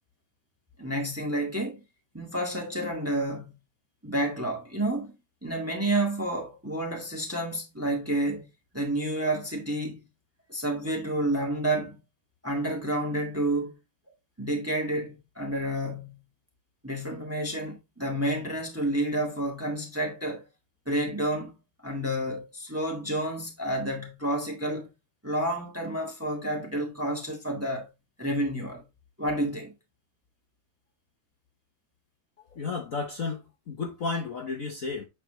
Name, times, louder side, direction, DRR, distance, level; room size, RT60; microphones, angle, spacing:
voice 1, 0.8-1.8 2.1-3.6 4.0-5.1 5.4-8.4 8.7-10.0 10.5-12.0 12.4-13.7 14.4-16.2 16.8-20.4 20.8-21.5 21.8-24.9 25.2-27.9 28.2-28.8 29.2-29.7, right 1 dB, 10° right, 1.4 m, -30 dB
voice 2, 32.5-35.1, left 4 dB, 50° left, 1.2 m, -33 dB
8.1 x 4.2 x 3.1 m
omnidirectional pair, 2.3 m